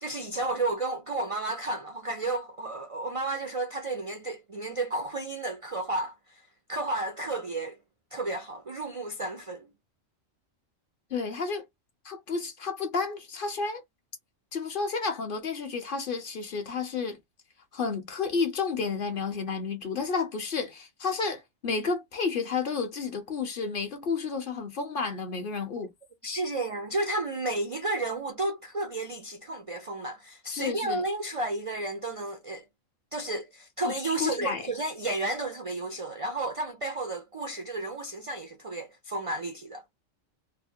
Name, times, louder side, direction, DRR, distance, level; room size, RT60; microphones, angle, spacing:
voice 1, 0.0-6.4 6.7-7.8 8.1-9.7 26.2-32.6 33.1-39.8, right 2 dB, 60° right, 0.3 m, -32 dB
voice 2, 11.1-11.6 12.0-13.8 14.5-17.2 17.7-25.9 30.5-31.0 33.9-34.0 34.2-34.7, left 5 dB, 50° left, 0.8 m, -31 dB
3.1 x 2.1 x 2.6 m
omnidirectional pair, 1.3 m